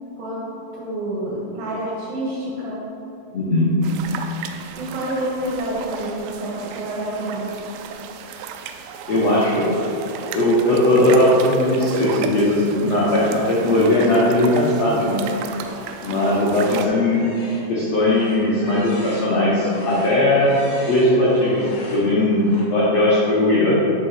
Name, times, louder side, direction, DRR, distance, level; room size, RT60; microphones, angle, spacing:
voice 1, 0.7-2.8 4.8-7.5, right 1 dB, 65° right, -5 dB, 3.0 m, -28 dB
voice 2, 3.3-3.7 9.1-9.6 10.3-15.2 16.0-17.2 17.7-20.6 20.9-21.6 21.9-22.5 22.7-23.8, left 1 dB, 85° left, -7 dB, 1.4 m, -18 dB
sound 1, 3.8-16.9, right 7 dB, 85° right, 2.7 m, -34 dB
sound 2, 15.5-16.6 17.1-22.6, left 1 dB, 55° left, 3.4 m, -40 dB
6.3 x 5.7 x 5.7 m, 2.7 s
omnidirectional pair, 4.8 m